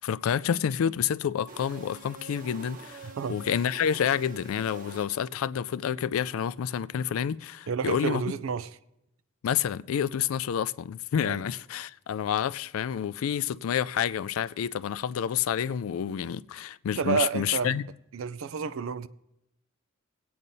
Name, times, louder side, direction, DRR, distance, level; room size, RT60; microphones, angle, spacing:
voice 1, 0.0-8.2 9.4-17.9, left 8 dB, 85° left, 0.3 m, -29 dB
sound 1, 1.5-5.5, right 3 dB, 40° right, 1.0 m, -46 dB
voice 2, 7.7-8.7 11.2-11.4 17.0-17.7 18.1-19.1, right 6 dB, 75° right, 0.4 m, -30 dB
22.5 x 8.6 x 2.7 m
head